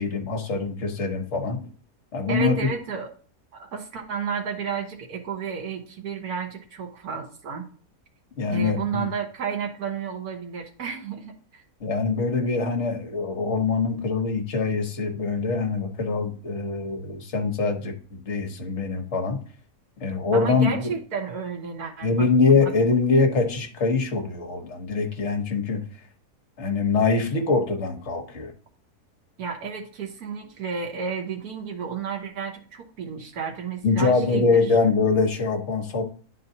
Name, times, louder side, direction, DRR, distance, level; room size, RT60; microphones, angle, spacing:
voice 1, 0.0-1.7 2.1-2.7 8.4-9.1 11.8-19.4 20.0-20.9 22.0-25.8 26.6-28.5 33.8-36.0, left 4 dB, 50° left, 4 dB, 1.3 m, -23 dB
voice 2, 2.3-3.1 3.5-7.7 8.4-11.6 20.3-22.7 29.4-34.5, right 6 dB, 70° right, 2 dB, 1.7 m, -32 dB
10.0 x 4.2 x 2.7 m, 0.44 s
omnidirectional pair, 1.7 m